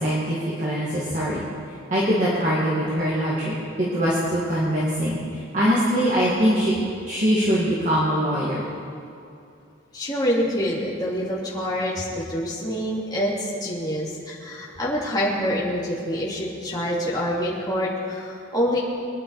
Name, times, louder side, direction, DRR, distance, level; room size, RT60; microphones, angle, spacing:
voice 1, 0.0-1.4 1.9-6.7 7.0-8.6, equal, 35° right, -7 dB, 2.4 m, -23 dB
voice 2, 9.9-18.8, equal, 20° left, -8 dB, 3.1 m, -26 dB
23.0 x 10.0 x 5.0 m, 2.5 s
head